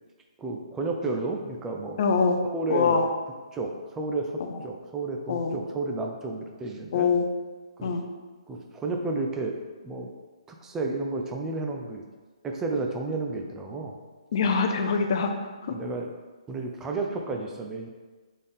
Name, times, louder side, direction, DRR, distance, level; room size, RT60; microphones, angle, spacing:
voice 1, 0.4-2.0 2.4-3.1 3.5-7.1 7.8-7.9 8.5-9.6 9.8-10.1 10.5-12.0 12.4-13.9 15.7-16.1 16.5-17.9, right 3 dB, 10° right, 2 dB, 0.5 m, -31 dB
voice 2, 2.0-2.4 2.7-3.0 4.4-4.6 5.3-5.6 6.9-7.3 7.8-8.0 14.3-15.3 15.7-15.8, left 5 dB, 50° left, 4 dB, 0.6 m, -24 dB
3.7 x 3.4 x 4.2 m, 1.3 s
hypercardioid pair, 145°, 3 cm